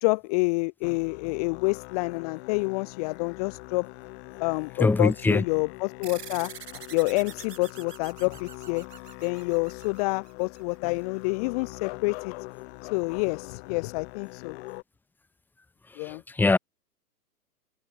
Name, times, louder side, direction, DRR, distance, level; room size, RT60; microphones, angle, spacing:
voice 1, 0.0-3.9 4.4-6.5 6.9-8.8 9.2-12.3 12.9-14.5 16.0-16.2, left 28 dB, 25° left, 0.6 m, -28 dB
Musical instrument, 0.8-14.8, left 24 dB, 45° left, 5.8 m, -43 dB
voice 2, 4.8-5.4 16.4-16.6, left 3 dB, 5° left, 1.0 m, -21 dB
sound 1, 6.0-10.9, right 8 dB, 80° right, 3.9 m, -45 dB
hypercardioid pair, 130°, 47 cm